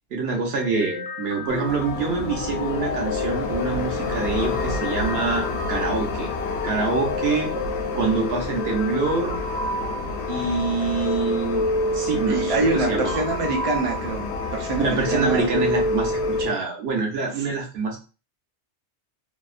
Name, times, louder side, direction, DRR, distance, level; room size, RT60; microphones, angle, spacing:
voice 1, 0.1-6.3 6.6-7.5 7.9-9.4 10.3-11.7 11.9-13.2 14.8-18.0, right 4 dB, 65° right, 0 dB, 0.9 m, -26 dB
sound 1, 0.6-16.5, left 2 dB, 50° left, 0.4 m, -30 dB
sound 2, 1.5-16.5, left 4 dB, 75° left, 0.8 m, -30 dB
voice 2, 12.3-15.5, right 3 dB, 40° right, 0 dB, 0.5 m, -25 dB
2.7 x 2.1 x 2.4 m, 0.33 s
omnidirectional pair, 1.2 m